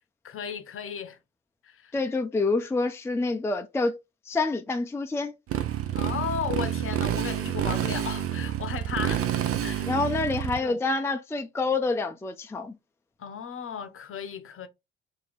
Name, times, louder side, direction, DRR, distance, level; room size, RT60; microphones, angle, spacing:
voice 1, 0.2-1.2 1.6-1.9 5.9-9.3 9.6-9.9 10.6-10.8 13.2-14.7, left 7 dB, 45° left, 0.8 m, -35 dB
voice 2, 1.9-4.0 4.3-5.3 9.9-12.8, left 3 dB, 10° left, 0.5 m, -27 dB
Motorcycle, 5.5-10.6, right 10 dB, 45° right, 0.7 m, -28 dB
2.9 x 2.8 x 3.9 m
hypercardioid pair, 50°, 31 cm